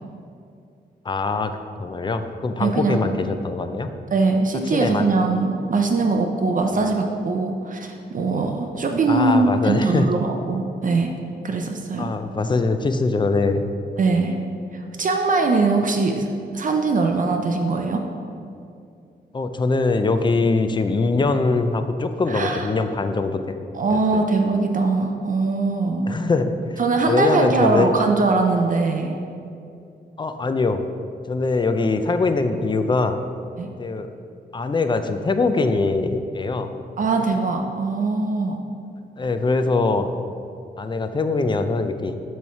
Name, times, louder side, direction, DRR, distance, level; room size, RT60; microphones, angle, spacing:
voice 1, 1.0-1.5 1.8-3.9 4.7-5.0 9.1-10.1 12.0-13.7 19.3-23.4 24.1-24.2 26.1-26.8 27.1-27.9 30.2-30.8 31.3-33.2 33.8-34.1 34.5-36.7 39.2-40.2 40.8-42.2, left 3 dB, 25° left, 8 dB, 0.4 m, -22 dB
voice 2, 2.6-3.0 4.1-11.1 11.4-12.1 14.0-14.4 14.7-18.1 22.3-22.7 23.7-26.1 26.8-29.2 33.6-33.7 37.0-38.6, right 3 dB, 50° right, 3 dB, 0.5 m, -21 dB
7.0 x 3.2 x 5.7 m, 2.5 s
cardioid pair, 90°, 18 cm